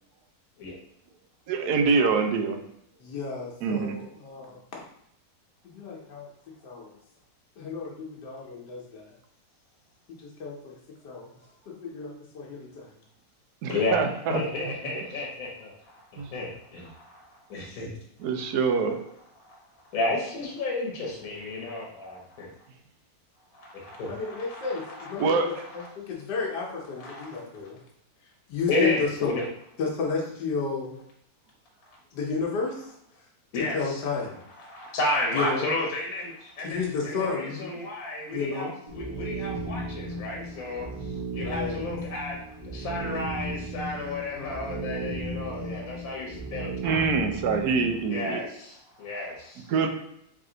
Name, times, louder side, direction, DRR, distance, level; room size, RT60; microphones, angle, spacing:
voice 1, 1.5-2.6 3.6-3.9 13.6-14.4 16.2-16.3 18.2-19.0 25.2-25.6 46.8-48.4 49.7-49.9, right 5 dB, 75° right, 6 dB, 1.1 m, -25 dB
voice 2, 3.0-4.8 5.6-6.3 6.6-6.9 7.6-9.1 10.1-10.8 11.0-11.3 11.7-12.9 24.1-27.8 28.5-29.3 29.8-31.0 32.1-32.9 33.6-34.4 35.3-35.7 36.6-37.8 38.3-38.7 41.3-41.8, left 4 dB, 90° left, -2 dB, 1.4 m, -32 dB
voice 3, 13.7-17.9 19.4-19.6 19.9-22.5 23.5-25.9 27.0-27.4 28.7-29.4 31.9-32.0 33.5-34.0 34.6-47.1 48.1-49.7, left 2 dB, 65° left, -2 dB, 1.2 m, -32 dB
sound 1, 38.9-48.1, right 2 dB, 30° right, 0.8 m, -35 dB
3.4 x 3.4 x 3.8 m, 0.73 s
omnidirectional pair, 1.8 m